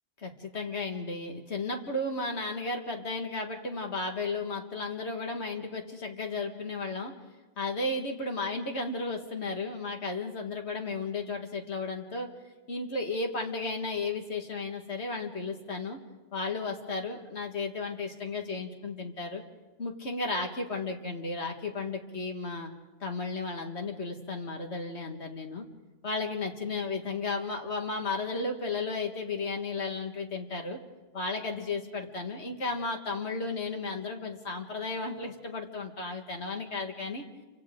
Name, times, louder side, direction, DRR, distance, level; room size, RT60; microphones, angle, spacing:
voice 1, 0.2-7.1 7.6-12.3 12.7-16.0 16.3-19.4 19.8-22.7 23.0-25.7 26.0-30.8 31.1-37.2, left 3 dB, 60° left, 3 dB, 2.0 m, -34 dB
29.0 x 25.5 x 3.8 m, 1.2 s
omnidirectional pair, 1.3 m